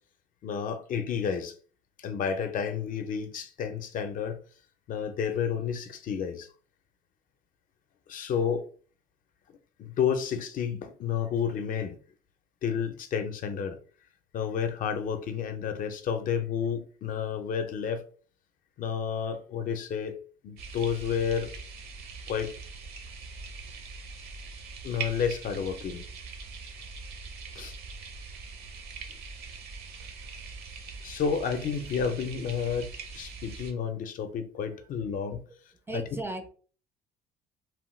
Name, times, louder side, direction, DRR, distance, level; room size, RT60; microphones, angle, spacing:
voice 1, 0.4-1.5 2.0-4.4 4.9-6.5 8.1-8.6 9.8-12.0 12.6-13.8 14.3-18.0 18.8-20.2 20.4-21.5 22.3-22.6 24.8-26.1 27.6-27.8 31.0-35.4, left 7 dB, 55° left, 0.5 m, -31 dB
sound 1, 20.6-33.7, right 4 dB, 70° right, 0.7 m, -42 dB
voice 2, 35.9-36.5, right 2 dB, 15° right, 0.4 m, -36 dB
2.9 x 2.1 x 3.1 m
cardioid pair, 110°, 17 cm